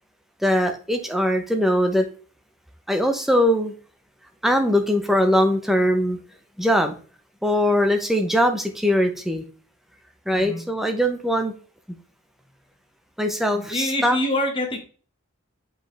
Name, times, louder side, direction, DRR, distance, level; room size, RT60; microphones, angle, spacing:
voice 1, 0.4-2.1 2.9-3.7 4.4-6.2 6.6-7.0 7.4-9.4 10.3-11.5 13.2-14.2, equal, ahead, 5 dB, 0.9 m, -21 dB
voice 2, 13.5-14.8, left 1 dB, 20° left, 2 dB, 1.5 m, -25 dB
8.1 x 5.2 x 3.4 m, 0.39 s
head